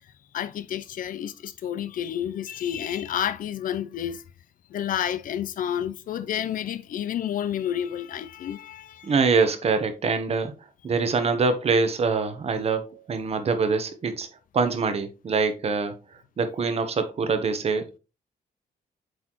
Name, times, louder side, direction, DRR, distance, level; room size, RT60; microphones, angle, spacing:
voice 1, 0.3-4.2 4.7-9.1, left 10 dB, 65° left, 0.5 m, -30 dB
voice 2, 9.0-10.5 10.8-14.3 14.5-15.9 16.4-18.0, right 4 dB, 40° right, 1.0 m, -24 dB
7.8 x 4.2 x 3.0 m
cardioid pair, 130°, 15 cm